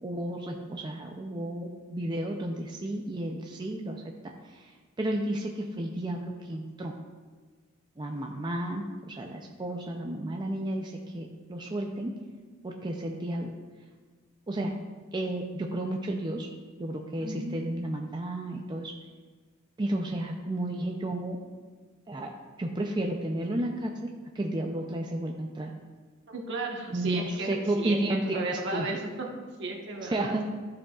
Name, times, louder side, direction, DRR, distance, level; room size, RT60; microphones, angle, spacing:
voice 1, 0.0-4.0 4.4-6.9 8.0-12.1 12.6-13.5 14.5-14.7 15.1-16.5 16.7-18.9 19.8-21.4 22.1-22.3 22.6-24.1 24.3-25.7 26.9-28.9 30.0-30.4, right 1 dB, 20° right, 1 dB, 0.4 m, -32 dB
voice 2, 17.2-17.6 26.3-29.0 29.6-30.4, right 2 dB, 60° right, 0 dB, 1.3 m, -34 dB
13.0 x 4.9 x 2.4 m, 1.5 s
head